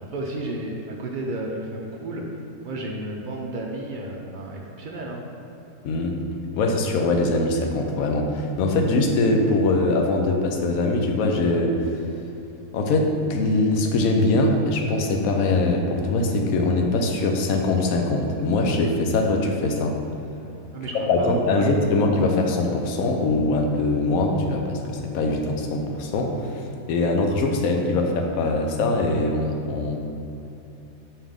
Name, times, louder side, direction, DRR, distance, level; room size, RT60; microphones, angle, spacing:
voice 1, 0.1-5.3 20.7-21.7, right 1 dB, 70° right, -1 dB, 0.4 m, -32 dB
voice 2, 5.8-6.2 6.5-12.0 12.7-20.0 20.9-30.0, left 2 dB, 80° left, 2 dB, 1.1 m, -22 dB
5.6 x 4.7 x 3.5 m, 2.9 s
omnidirectional pair, 1.5 m